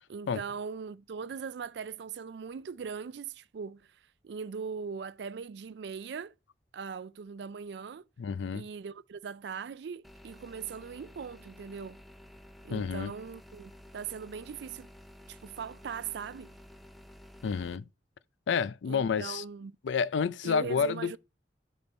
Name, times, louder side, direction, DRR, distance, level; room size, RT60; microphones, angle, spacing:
voice 1, 0.1-3.9 4.2-6.3 6.7-8.0 8.5-12.0 12.6-14.9 15.3-16.6 18.9-19.8 20.4-21.2, right 6 dB, 70° right, 0.4 m, -40 dB
voice 2, 8.2-8.7 12.7-13.1 17.4-17.9 18.5-19.4 19.8-21.2, left 6 dB, 90° left, 0.4 m, -29 dB
sound 1, 10.0-17.8, left 1 dB, ahead, 0.5 m, -52 dB
6.7 x 4.3 x 5.2 m
head